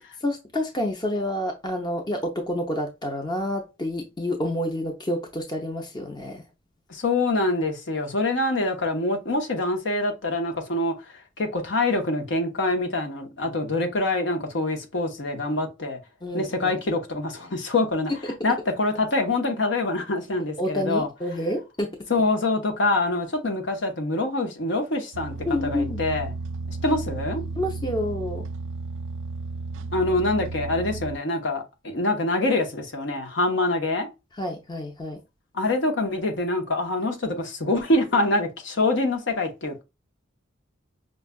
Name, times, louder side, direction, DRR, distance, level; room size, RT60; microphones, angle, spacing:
voice 1, 0.2-6.4 16.2-16.7 18.2-18.3 20.6-22.0 25.5-26.0 27.6-28.5 34.4-35.2, left 1 dB, 20° left, 0.6 m, -28 dB
voice 2, 6.9-10.9 11.4-16.0 16.3-18.1 18.4-21.1 22.1-25.3 25.6-26.3 26.8-27.4 29.9-34.1 35.5-39.8, left 2 dB, 65° left, 0.9 m, -25 dB
sound 1, 25.1-31.2, right 3 dB, 70° right, 0.3 m, -34 dB
5.3 x 2.4 x 2.2 m
head